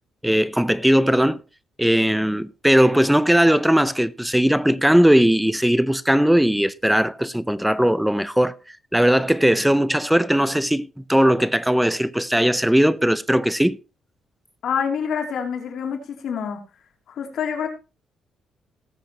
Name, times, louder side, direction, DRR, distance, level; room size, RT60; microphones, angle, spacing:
voice 1, 0.2-1.4 1.8-13.8, equal, 5° right, 0.6 m, -19 dB
voice 2, 14.6-16.6 17.1-17.7, left 7 dB, 65° left, 2.9 m, -26 dB
18.5 x 8.4 x 3.0 m
cardioid pair, 90°, 0 cm